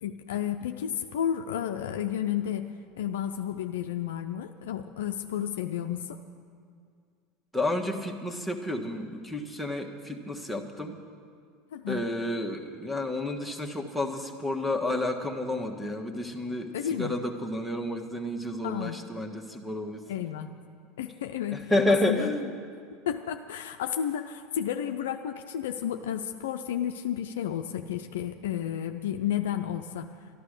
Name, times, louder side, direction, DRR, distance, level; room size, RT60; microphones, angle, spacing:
voice 1, 0.0-2.7 3.0-6.2 11.7-12.1 16.7-17.2 18.6-19.0 20.1-20.5 21.0-22.3 23.1-30.1, left 10 dB, 80° left, 6 dB, 0.5 m, -32 dB
voice 2, 7.5-11.0 11.9-20.0 21.5-22.5, left 1 dB, ahead, 4 dB, 1.3 m, -30 dB
12.5 x 11.5 x 6.6 m, 2.2 s
hypercardioid pair, 90°, 0 cm